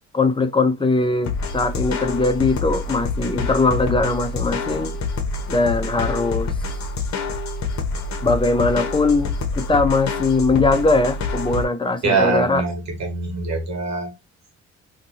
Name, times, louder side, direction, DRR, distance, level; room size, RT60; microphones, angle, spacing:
voice 1, 0.1-5.0 5.5-6.5 8.2-12.6, left 3 dB, 15° left, 0.7 m, -20 dB
sound 1, 1.2-11.6, left 3 dB, 65° left, 0.9 m, -27 dB
voice 2, 12.0-14.1, right 4 dB, 65° right, 1.4 m, -23 dB
2.8 x 2.6 x 4.0 m
cardioid pair, 80°, 30 cm